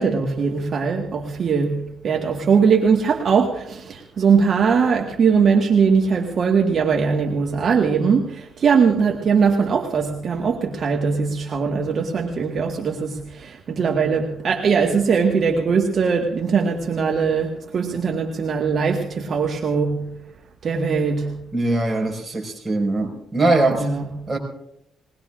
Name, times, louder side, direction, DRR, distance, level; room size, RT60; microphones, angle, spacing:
voice 1, 0.0-20.2 20.6-21.4 23.7-24.2, right 5 dB, 55° right, 1 dB, 1.6 m, -20 dB
voice 2, 21.5-23.9 24.3-24.4, right 2 dB, 20° right, 0 dB, 5.2 m, -21 dB
22.0 x 20.0 x 2.5 m, 0.80 s
cardioid pair, 90°, 0 cm